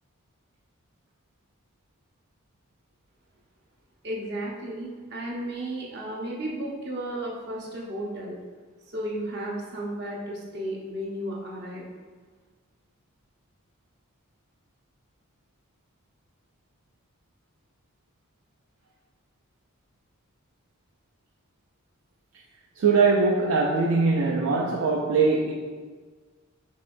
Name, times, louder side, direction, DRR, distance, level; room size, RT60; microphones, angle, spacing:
voice 1, 4.0-8.4 8.9-11.8, right 1 dB, 50° right, 0.9 m, -33 dB
voice 2, 22.8-25.5, right 4 dB, 75° right, 0.4 m, -21 dB
5.3 x 3.8 x 2.5 m
head